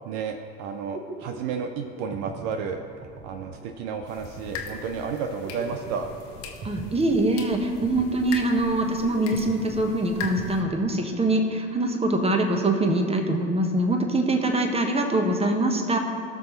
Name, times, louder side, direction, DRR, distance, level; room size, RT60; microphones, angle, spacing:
voice 1, 0.0-2.8 3.2-6.1, right 6 dB, 55° right, 5 dB, 0.8 m, -32 dB
sound 1, 0.6-11.4, right 3 dB, 35° right, 1.2 m, -41 dB
sound 2, 4.0-10.6, left 6 dB, 65° left, 1.4 m, -40 dB
voice 2, 6.6-16.0, right 1 dB, 15° right, 3 dB, 1.4 m, -23 dB
18.0 x 6.1 x 3.3 m, 2.4 s
hypercardioid pair, 75°, 39 cm